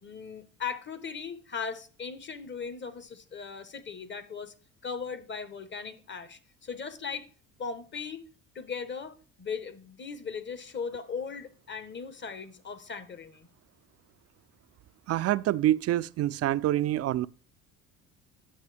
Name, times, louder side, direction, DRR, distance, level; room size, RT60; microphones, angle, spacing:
voice 1, 0.0-4.5 4.8-7.3 7.6-8.3 8.5-13.5, left 5 dB, 35° left, 1.1 m, -38 dB
voice 2, 15.1-17.3, right 13 dB, 45° right, 0.4 m, -26 dB
9.9 x 7.7 x 3.4 m
supercardioid pair, 75°, 34 cm